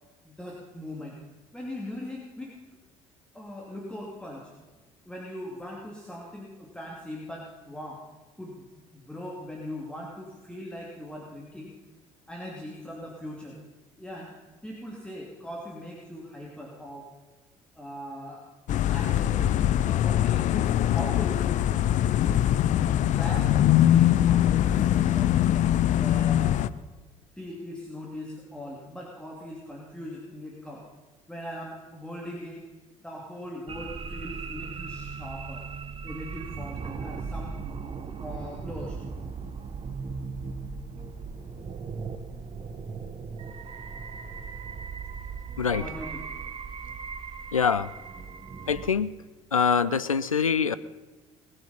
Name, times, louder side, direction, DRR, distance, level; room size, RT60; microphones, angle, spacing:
voice 1, 0.2-1.2 1.5-2.6 3.3-4.5 5.0-8.0 8.4-11.8 12.3-13.6 14.0-14.3 14.6-17.1 17.7-18.4 18.9-19.6 19.8-21.5 22.0-22.6 22.9-25.4 25.9-26.7 27.4-30.9 31.3-32.6 33.0-35.7 36.0-37.5 38.2-39.0 45.7-46.4, left 1 dB, 5° left, -3 dB, 2.9 m, -40 dB
sound 1, 18.7-26.7, left 12 dB, 45° left, 0.6 m, -22 dB
sound 2, 33.7-48.9, right 5 dB, 35° right, 1.3 m, -38 dB
voice 2, 47.5-47.9 48.7-49.1 49.5-50.8, left 6 dB, 90° left, 16 dB, 0.4 m, -24 dB
20.0 x 9.7 x 5.6 m, 1.2 s
figure-of-eight pair, 55°, 17 cm